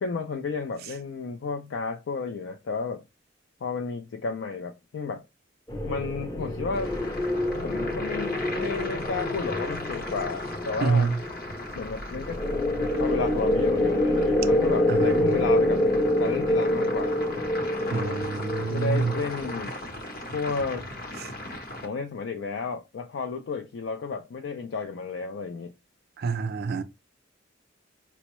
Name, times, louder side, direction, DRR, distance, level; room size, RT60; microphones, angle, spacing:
voice 1, 0.0-3.0 3.6-5.2 5.9-6.9 7.6-11.1 11.8-12.4 13.0-15.9 16.2-17.4 17.9-18.2 18.7-19.7 20.3-20.9 21.8-25.7, left 4 dB, 70° left, 0.4 m, -32 dB
sound 1, 5.7-19.5, left 1 dB, 15° left, 0.5 m, -27 dB
sound 2, 6.7-21.9, left 1 dB, 50° left, 0.8 m, -38 dB
voice 2, 10.8-11.2 14.9-15.3 17.9-19.1 26.2-26.8, right 4 dB, 55° right, 0.4 m, -26 dB
4.4 x 2.0 x 3.0 m
head